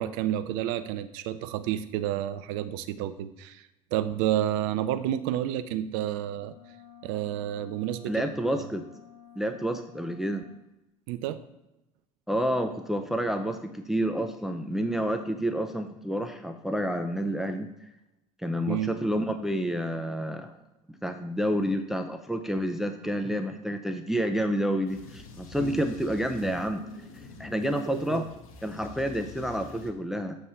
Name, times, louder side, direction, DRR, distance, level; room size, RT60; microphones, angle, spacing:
voice 1, 0.0-6.6 7.0-8.2 8.5-8.7 11.1-11.4 18.7-18.9 25.6-25.8 27.9-28.2, right 12 dB, 65° right, 12 dB, 0.5 m, -30 dB
sound 1, 6.2-10.7, left 9 dB, 55° left, 1.4 m, -52 dB
voice 2, 8.1-8.8 9.4-10.4 12.3-17.7 18.4-20.6 21.0-26.8 27.4-28.2 28.6-30.4, equal, ahead, 6 dB, 0.6 m, -29 dB
sound 2, 24.9-29.9, left 3 dB, 80° left, 0.9 m, -47 dB
7.2 x 3.2 x 5.6 m, 0.93 s
hypercardioid pair, 65°, 18 cm